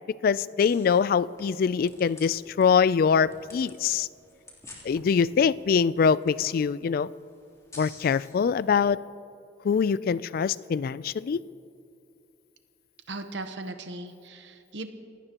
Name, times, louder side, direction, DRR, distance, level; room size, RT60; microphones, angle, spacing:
voice 1, 0.1-4.1 4.9-7.1 7.8-9.0 9.6-11.4, left 6 dB, 55° left, 19 dB, 0.3 m, -24 dB
sound 1, 0.6-8.7, left 2 dB, 20° left, 3.2 m, -52 dB
voice 2, 13.1-14.9, right 2 dB, 80° right, 7 dB, 1.0 m, -38 dB
27.5 x 17.5 x 2.9 m, 2.6 s
head